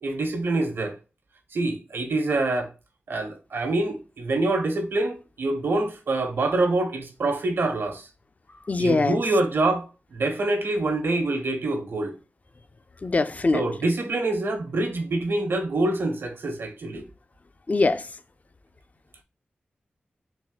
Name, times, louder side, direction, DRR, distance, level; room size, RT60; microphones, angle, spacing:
voice 1, 0.0-1.0 1.5-2.7 3.1-8.1 8.8-9.8 10.1-12.1 13.5-17.0, right 2 dB, 85° right, 1.2 m, -25 dB
voice 2, 8.7-9.2 13.0-13.6 17.7-18.1, left 3 dB, 40° left, 0.5 m, -22 dB
4.1 x 2.6 x 3.8 m
cardioid pair, 50°, 4 cm